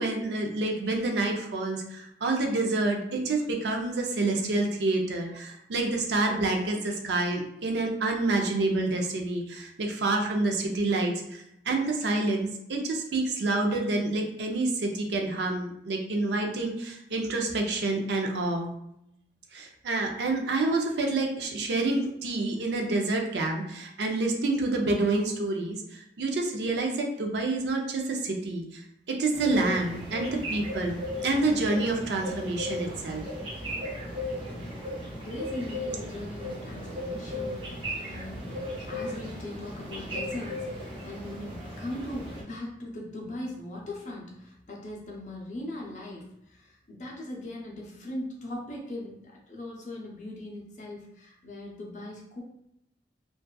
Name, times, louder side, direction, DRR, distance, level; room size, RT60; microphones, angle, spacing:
voice 1, 0.0-18.7 19.5-28.8 29.1-33.2, right 2 dB, 75° right, 2 dB, 0.5 m, -28 dB
sound 1, 29.3-42.4, equal, 30° right, 0.6 m, -36 dB
voice 2, 35.1-52.4, left 1 dB, 45° left, -3 dB, 0.6 m, -40 dB
2.6 x 2.3 x 2.2 m, 0.79 s
head